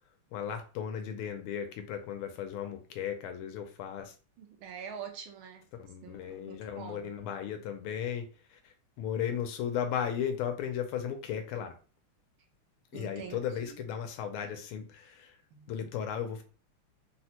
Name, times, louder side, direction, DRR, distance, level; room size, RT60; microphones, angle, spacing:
voice 1, 0.3-4.1 5.7-11.8 12.9-15.4 15.7-16.4, left 8 dB, 80° left, 1.4 m, -36 dB
voice 2, 4.4-5.7 6.0-7.2 12.9-13.9 15.5-15.9, right 7 dB, 80° right, 1.5 m, -45 dB
3.9 x 2.1 x 2.8 m
omnidirectional pair, 2.4 m